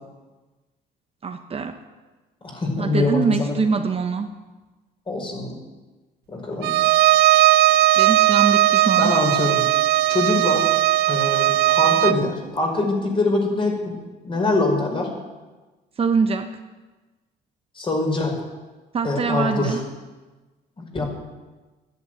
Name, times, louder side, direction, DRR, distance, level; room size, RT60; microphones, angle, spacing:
voice 1, 1.2-1.8 2.8-4.3 8.0-9.1 16.0-16.5 18.9-19.8, right 5 dB, 35° right, 6 dB, 1.0 m, -23 dB
voice 2, 2.4-3.6 5.1-5.5 6.3-6.7 9.0-9.6 10.1-10.7 11.1-13.9 14.2-15.1 17.8-18.3 19.0-19.8 20.8-21.0, left 2 dB, 30° left, 1 dB, 5.3 m, -23 dB
Bowed string instrument, 6.6-12.2, right 14 dB, 75° right, 0.7 m, -18 dB
13.0 x 10.5 x 9.3 m, 1.2 s
cardioid pair, 110°, 17 cm